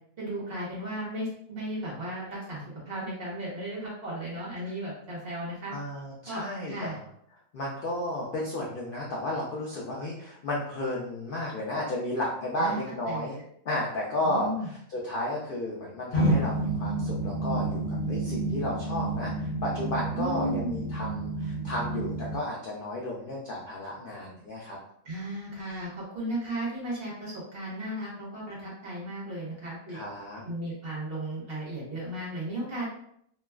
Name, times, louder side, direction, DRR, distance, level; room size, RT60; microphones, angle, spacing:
voice 1, 0.2-5.7 6.2-7.0 12.6-12.8 13.0-13.3 14.2-14.7 20.1-20.8 25.0-30.0 30.4-32.9, right 1 dB, 45° right, -6 dB, 1.1 m, -35 dB
voice 2, 5.7-7.0 7.5-13.4 13.7-24.8 29.9-30.4, left 1 dB, 80° left, -4 dB, 0.4 m, -33 dB
sound 1, 16.1-22.4, right 2 dB, 60° left, 1.3 m, -29 dB
3.0 x 2.3 x 2.2 m, 0.70 s
omnidirectional pair, 1.6 m